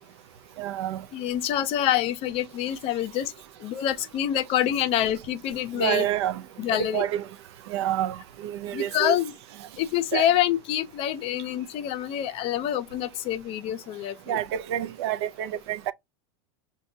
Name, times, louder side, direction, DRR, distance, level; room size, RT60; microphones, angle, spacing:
voice 1, 0.6-1.0 5.7-6.4 6.8-7.2 7.7-8.2 8.4-9.2 10.1-10.3 14.3-15.9, right 12 dB, 75° right, 0.5 m, -28 dB
voice 2, 1.1-3.3 3.6-6.1 6.6-7.1 8.7-9.3 9.8-14.4, left 11 dB, 45° left, 0.5 m, -26 dB
6.0 x 2.2 x 2.7 m
supercardioid pair, 135°, 14 cm